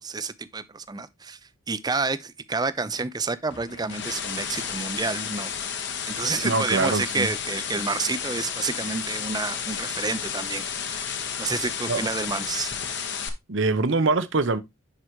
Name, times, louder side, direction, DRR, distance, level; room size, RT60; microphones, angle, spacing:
voice 1, 0.0-1.4 1.7-5.5 5.8-12.8, right 4 dB, 20° right, 0.5 m, -29 dB
sound 1, 3.5-13.3, left 7 dB, 55° left, 1.2 m, -32 dB
voice 2, 6.4-7.3 11.9-12.0 13.5-14.6, right 3 dB, 60° right, 0.8 m, -23 dB
11.0 x 4.8 x 3.0 m
head